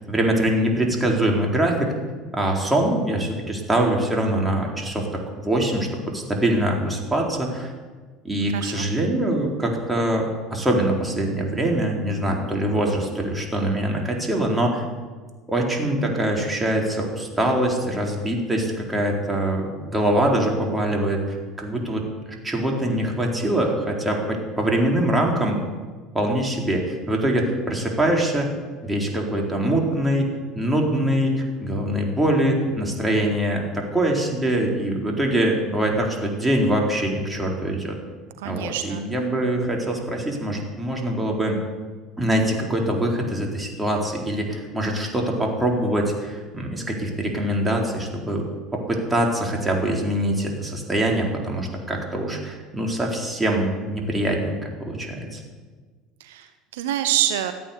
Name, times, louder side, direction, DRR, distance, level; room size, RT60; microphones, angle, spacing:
voice 1, 0.1-1.9 2.3-5.1 5.4-7.7 8.2-14.8 15.5-22.0 22.4-25.6 26.1-28.5 28.8-30.3 30.5-38.0 38.4-41.6 42.2-48.5 48.7-55.4, right 1 dB, 15° right, -1 dB, 4.1 m, -23 dB
voice 2, 8.5-8.9 38.4-39.0 56.2-57.5, right 11 dB, 80° right, 9 dB, 0.8 m, -26 dB
14.5 x 9.0 x 8.3 m, 1.4 s
hypercardioid pair, 75°, 0 cm